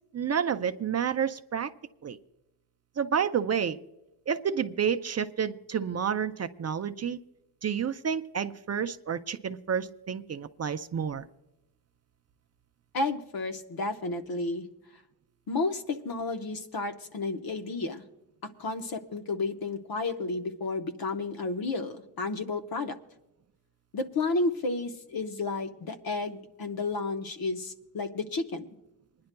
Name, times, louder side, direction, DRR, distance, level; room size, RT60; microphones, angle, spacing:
voice 1, 0.1-1.7 2.0-2.2 3.0-3.8 4.3-7.2 7.6-11.2, right 7 dB, 40° right, 9 dB, 0.4 m, -30 dB
voice 2, 12.9-14.7 15.5-18.0 18.4-23.0 23.9-28.7, left 3 dB, 60° left, 7 dB, 0.9 m, -32 dB
27.5 x 10.5 x 2.2 m, 0.92 s
wide cardioid pair, 110°, 41 cm